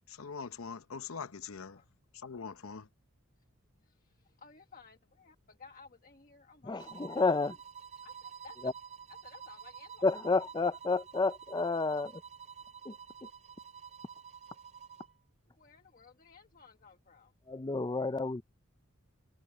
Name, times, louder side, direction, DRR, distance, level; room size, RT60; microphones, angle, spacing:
voice 1, 0.1-1.8 2.1-2.9, left 5 dB, 80° left, 0.8 m, -43 dB
voice 2, 3.8-7.0 8.0-8.7 9.1-10.0 15.6-17.3, left 5 dB, 40° left, 1.4 m, -57 dB
voice 3, 6.6-7.6 8.6-8.7 10.0-12.2 12.9-13.0 17.5-18.4, left 3 dB, 20° left, 0.5 m, -30 dB
sound 1, 6.8-15.2, right 7 dB, 35° right, 4.4 m, -50 dB
head